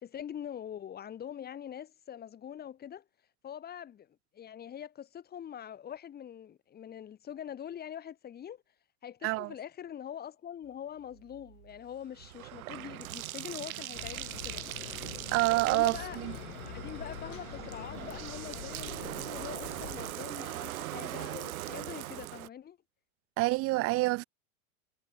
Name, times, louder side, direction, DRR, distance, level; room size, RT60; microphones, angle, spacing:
voice 1, 0.0-3.0 3.4-4.1 4.3-8.6 9.0-14.6 15.7-16.2 16.6-22.8, left 9 dB, 20° left, 4.9 m, -44 dB
voice 2, 9.2-9.5 15.3-16.3 23.4-24.2, right 21 dB, 35° right, 1.0 m, -27 dB
Bathtub (filling or washing), 11.1-22.5, right 15 dB, 80° right, 1.1 m, -41 dB
sound 1, 13.9-20.1, left 13 dB, 80° left, 4.3 m, -45 dB
supercardioid pair, 145°, 42 cm